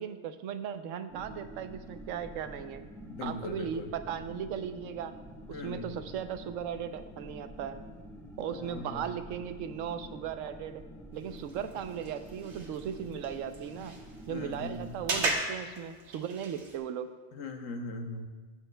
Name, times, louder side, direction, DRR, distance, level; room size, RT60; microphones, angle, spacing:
voice 1, 0.0-2.8 3.2-5.1 5.5-7.8 8.4-10.8 11.1-14.0 14.3-17.1, right 8 dB, 85° right, 10 dB, 0.9 m, -37 dB
sound 1, 1.1-15.3, equal, ahead, 0.9 m, -48 dB
voice 2, 3.0-3.9 5.5-5.9 8.5-9.1 14.3-15.0 17.3-18.3, left 2 dB, 80° left, 6 dB, 1.2 m, -39 dB
sound 2, 11.1-16.8, right 2 dB, 65° right, 1.3 m, -38 dB
18.0 x 6.5 x 2.2 m, 1.4 s
omnidirectional pair, 1.3 m